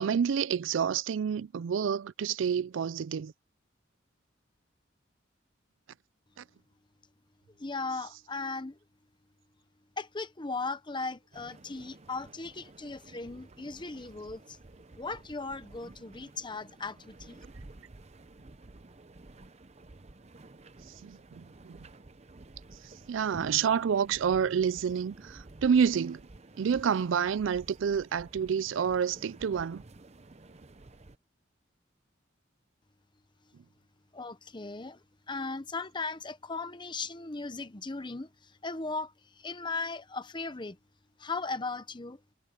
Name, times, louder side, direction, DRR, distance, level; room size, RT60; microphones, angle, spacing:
voice 1, 0.0-3.3 21.0-21.9 23.1-26.2 26.6-29.8, right 7 dB, 85° right, 0.4 m, -28 dB
voice 2, 7.5-8.8 10.0-14.6 15.0-17.4 34.1-40.8 41.2-42.2, left 3 dB, 25° left, 0.9 m, -37 dB
sound 1, 11.3-31.2, right 2 dB, 35° right, 0.8 m, -52 dB
head